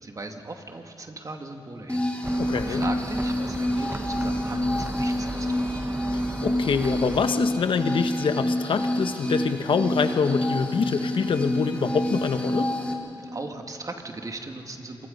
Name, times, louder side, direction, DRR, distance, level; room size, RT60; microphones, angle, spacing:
voice 1, 0.0-2.1 2.4-5.5 13.3-15.1, right 2 dB, 40° right, 4 dB, 2.3 m, -38 dB
sound 1, 1.9-12.9, left 1 dB, 15° left, 3.6 m, -28 dB
sound 2, 2.2-7.3, right 2 dB, 20° right, 0.9 m, -35 dB
voice 2, 2.4-2.8 6.1-12.7, left 5 dB, 70° left, 8 dB, 1.2 m, -25 dB
26.0 x 21.0 x 5.5 m, 3.0 s
cardioid pair, 50°, 9 cm